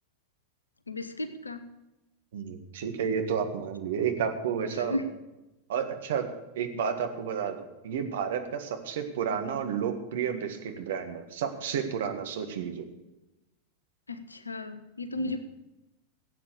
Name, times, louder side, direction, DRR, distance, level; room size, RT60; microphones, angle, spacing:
voice 1, 0.9-1.6 4.8-5.0 14.1-15.4, left 1 dB, 80° left, 11 dB, 0.8 m, -34 dB
voice 2, 2.3-5.0 5.7-6.2 6.5-12.8 15.2-15.3, right 7 dB, 60° right, 6 dB, 1.7 m, -31 dB
16.0 x 8.5 x 7.0 m, 0.97 s
figure-of-eight pair, 90°, 0 cm